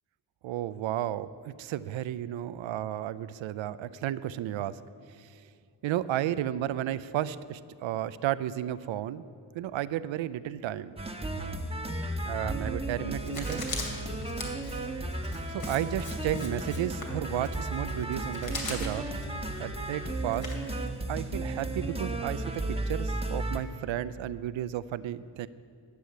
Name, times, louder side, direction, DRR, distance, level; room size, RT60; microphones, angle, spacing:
voice 1, 0.4-4.8 5.1-5.4 5.8-9.2 9.5-11.0 12.3-13.6 15.5-19.1 19.6-20.5 21.1-25.5, right 12 dB, 80° right, 16 dB, 0.5 m, -33 dB
sound 1, 11.0-23.6, right 1 dB, 15° right, 1.3 m, -34 dB
Writing, 13.2-21.2, left 2 dB, 50° left, 2.7 m, -41 dB
11.5 x 6.3 x 8.6 m, 2.4 s
supercardioid pair, 45°, 45 cm